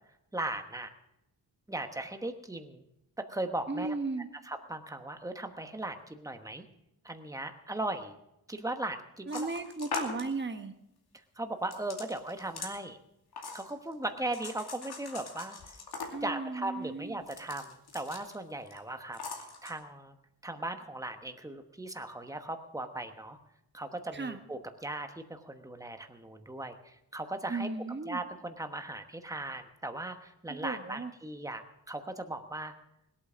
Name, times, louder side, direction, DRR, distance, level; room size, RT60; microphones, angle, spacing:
voice 1, 0.3-0.9 1.7-2.9 3.2-3.9 4.4-6.6 7.0-8.2 8.5-9.5 11.4-13.0 13.5-15.7 16.2-20.2 20.4-23.4 23.7-27.7 28.0-32.7, right 2 dB, 10° right, 6 dB, 1.1 m, -38 dB
voice 2, 3.7-4.3 9.3-10.7 16.1-17.2 24.1-24.4 27.5-28.2 30.5-31.1, right 3 dB, 30° right, 7 dB, 1.2 m, -35 dB
sound 1, 9.3-10.3 11.7-12.7 13.3-13.9 14.3-16.4 17.2-18.3 18.7-18.8 19.1-19.7, left 4 dB, 85° left, 2.6 m, -41 dB
20.5 x 8.6 x 6.2 m, 0.84 s
wide cardioid pair, 170°, 38 cm